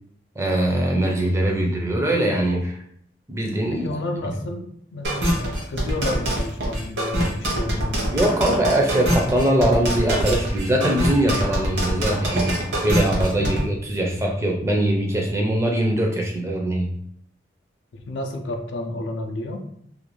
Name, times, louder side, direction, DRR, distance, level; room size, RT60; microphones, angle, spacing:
voice 1, 0.4-2.8 3.3-3.8 4.2-4.3 8.1-12.6 12.8-16.9, right 1 dB, 15° right, 0 dB, 0.4 m, -22 dB
voice 2, 3.7-8.1 13.3-13.6 17.9-19.6, left 2 dB, 85° left, 5 dB, 0.4 m, -31 dB
sound 1, 5.0-13.6, right 1 dB, 65° right, 0.9 m, -24 dB
2.5 x 2.2 x 2.9 m, 0.68 s
head